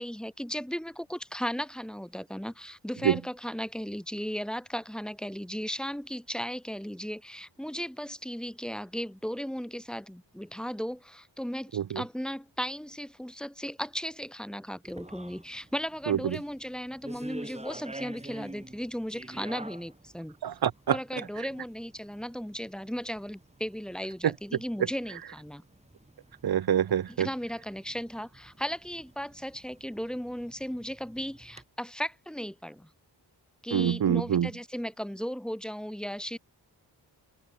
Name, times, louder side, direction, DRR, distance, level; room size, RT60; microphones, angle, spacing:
voice 1, 0.0-20.4 20.9-25.6 27.1-32.9 33.6-36.4, equal, ahead, 1.0 m, -36 dB
sound 1, 14.8-31.6, right 2 dB, 15° right, 3.7 m, -49 dB
voice 2, 20.4-21.0 26.4-27.3 33.7-34.5, right 9 dB, 55° right, 0.8 m, -26 dB
open air
wide cardioid pair, 85°, 44 cm